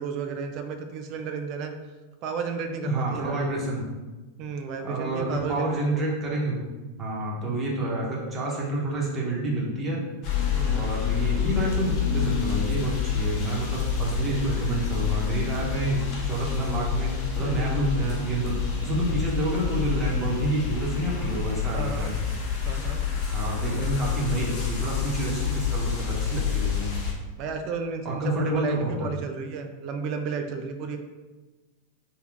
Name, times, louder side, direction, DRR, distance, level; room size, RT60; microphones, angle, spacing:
voice 1, 0.0-1.7 2.2-3.5 4.4-6.0 7.4-7.5 10.5-10.9 17.4-17.8 21.7-22.1 22.6-23.0 23.8-23.9 27.4-31.0, right 5 dB, 40° right, 6 dB, 0.4 m, -33 dB
voice 2, 2.8-3.9 4.8-6.6 7.0-10.0 10.7-22.1 23.3-26.9 28.0-28.9, right 2 dB, 20° right, -4 dB, 1.0 m, -28 dB
sound 1, 10.2-27.1, left 7 dB, 35° left, 0.7 m, -28 dB
3.4 x 2.3 x 3.7 m, 1.2 s
figure-of-eight pair, 90°, 0 cm